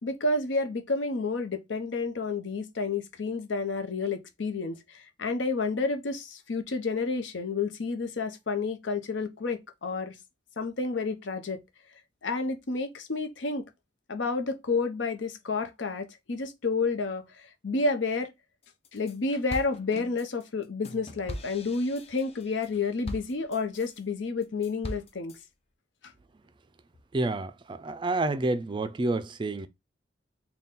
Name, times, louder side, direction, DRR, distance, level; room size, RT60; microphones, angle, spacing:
voice 1, 0.0-10.1 10.6-11.6 12.2-13.6 14.1-18.3 18.9-25.3, left 3 dB, 85° left, 0.7 m, -30 dB
sound 1, 18.6-19.2 19.5-24.0 24.4-25.4, left 1 dB, 35° left, 0.5 m, -41 dB
voice 2, 27.1-29.7, right 2 dB, 25° right, 0.3 m, -29 dB
4.1 x 2.2 x 3.6 m
head